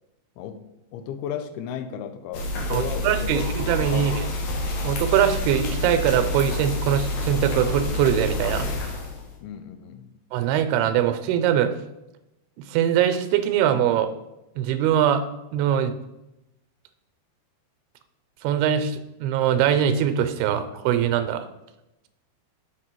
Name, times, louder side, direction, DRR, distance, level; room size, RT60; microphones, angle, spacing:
voice 1, 0.9-4.4 9.4-10.1, left 8 dB, 80° left, 10 dB, 2.5 m, -35 dB
sound 1, 2.3-9.3, left 1 dB, 65° left, 2.2 m, -28 dB
voice 2, 2.7-4.2 4.8-8.7 10.3-11.7 12.7-14.1 14.6-15.3 15.5-16.0 18.4-21.5, right 9 dB, 85° right, 9 dB, 2.5 m, -22 dB
6.8 x 6.7 x 4.5 m, 0.94 s
omnidirectional pair, 4.5 m